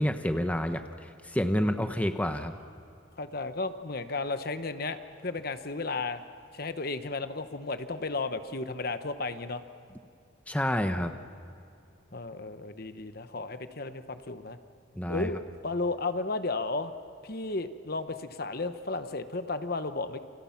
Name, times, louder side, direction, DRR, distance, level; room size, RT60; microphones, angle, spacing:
voice 1, 0.0-2.5 10.5-11.1 15.0-15.3, equal, 5° left, 7 dB, 0.9 m, -29 dB
voice 2, 3.2-6.2 6.5-9.6 12.1-14.6 15.1-16.9 17.2-20.2, left 3 dB, 50° left, 10 dB, 1.0 m, -34 dB
29.0 x 27.5 x 5.9 m, 2.7 s
head